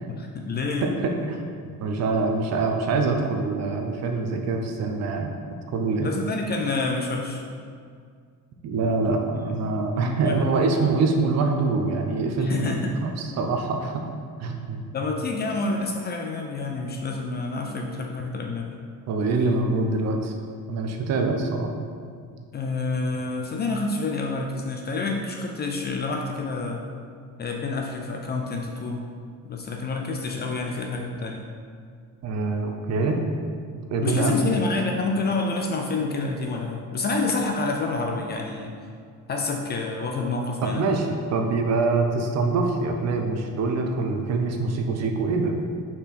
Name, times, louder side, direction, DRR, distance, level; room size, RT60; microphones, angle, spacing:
voice 1, 0.2-0.9 6.0-7.4 9.5-9.6 10.0-10.4 12.4-12.9 14.9-18.7 22.5-26.8 27.4-29.1 29.4-31.5 34.0-38.7 39.3-40.9, left 3 dB, 30° left, 2 dB, 0.4 m, -28 dB
voice 2, 0.8-1.4 1.8-5.3 5.7-6.1 8.6-14.0 14.4-14.8 19.1-20.3 20.7-21.7 32.2-33.2 33.9-34.5 40.6-45.6, right 3 dB, 50° right, 3 dB, 0.7 m, -24 dB
5.6 x 4.5 x 4.2 m, 2.1 s
cardioid pair, 175°, 35 cm